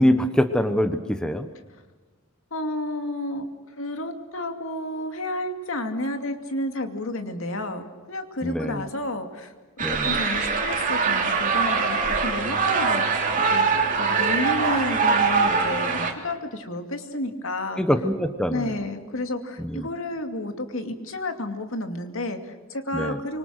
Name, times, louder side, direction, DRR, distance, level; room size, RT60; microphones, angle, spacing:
voice 1, 0.0-1.5 8.4-8.9 9.8-10.2 17.8-18.7 19.6-19.9 22.9-23.2, equal, 5° left, 8 dB, 1.0 m, -24 dB
voice 2, 2.5-3.5 3.8-7.8 8.1-9.5 9.9-17.8 18.5-23.4, left 1 dB, 70° left, 6 dB, 2.5 m, -31 dB
sound 1, 9.8-16.1, right 5 dB, 35° right, 2.9 m, -23 dB
25.5 x 24.5 x 6.5 m, 1.3 s
head